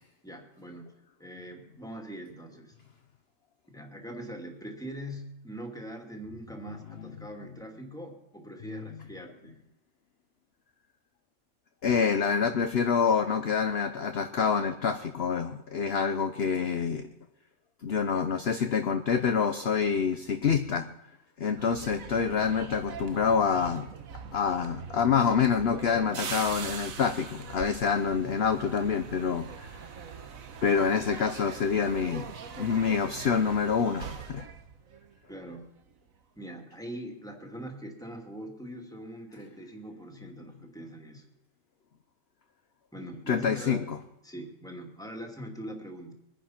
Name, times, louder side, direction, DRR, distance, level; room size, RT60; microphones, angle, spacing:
voice 1, 0.2-0.9 1.2-2.7 3.7-9.5 35.3-35.7 36.4-41.3 42.9-43.9 44.2-46.1, equal, ahead, 2 dB, 2.4 m, -42 dB
voice 2, 11.8-17.1 17.8-20.9 21.4-23.9 24.3-29.9 30.6-32.3 32.6-34.5 43.3-44.0, left 6 dB, 50° left, 8 dB, 0.9 m, -27 dB
sound 1, 21.6-35.6 35.9-36.2, right 6 dB, 70° right, 1.5 m, -42 dB
23.0 x 10.0 x 5.9 m, 0.88 s
omnidirectional pair, 1.5 m